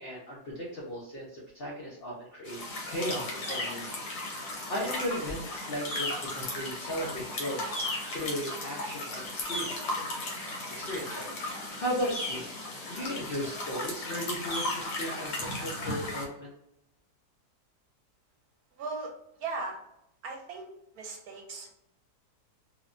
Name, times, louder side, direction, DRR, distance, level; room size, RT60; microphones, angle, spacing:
voice 1, 0.0-4.0 4.3-7.6 8.1-10.0 10.7-11.4 11.8-12.5 12.9-16.5, equal, 60° left, -6 dB, 0.6 m, -36 dB
sound 1, 2.5-16.2, left 2 dB, 80° left, 1.4 m, -36 dB
voice 2, 18.7-19.1 19.4-19.8 20.2-20.7 20.9-21.7, right 3 dB, 70° right, 2 dB, 1.1 m, -37 dB
3.0 x 2.1 x 2.4 m, 0.81 s
omnidirectional pair, 1.7 m